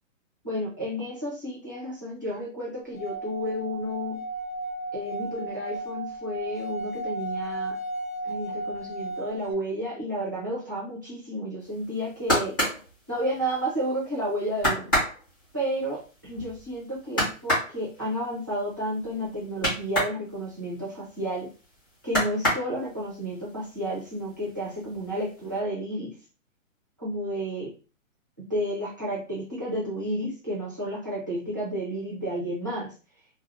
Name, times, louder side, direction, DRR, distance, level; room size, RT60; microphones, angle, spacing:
voice 1, 0.4-4.2 4.9-7.8 8.2-12.6 13.1-14.9 15.5-21.5 22.0-26.1 27.0-27.7 28.5-32.9, equal, 15° right, -7 dB, 0.5 m, -31 dB
Singing / Glass, 2.9-9.5, right 2 dB, 80° left, 0.9 m, -34 dB
sound 1, 11.8-13.8 14.2-14.3 14.6-20.2 20.5-21.6 22.0-23.1 23.6-24.2 24.4-25.2 25.5-25.6, equal, 15° left, 0.7 m, -28 dB
2.4 x 2.0 x 3.1 m, 0.34 s
hypercardioid pair, 170°, 40 cm